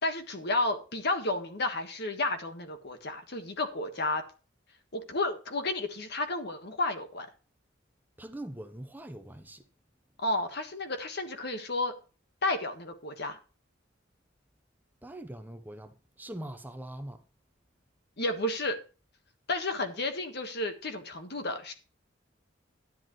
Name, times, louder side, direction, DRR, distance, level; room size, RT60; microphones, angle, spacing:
voice 1, 0.0-4.2 4.9-7.3 10.2-11.9 12.4-13.4 18.2-18.8 19.5-21.7, left 2 dB, 60° left, 1.5 m, -32 dB
voice 2, 8.2-9.6 15.0-17.2, right 1 dB, 10° right, 0.8 m, -42 dB
11.0 x 10.5 x 3.1 m
head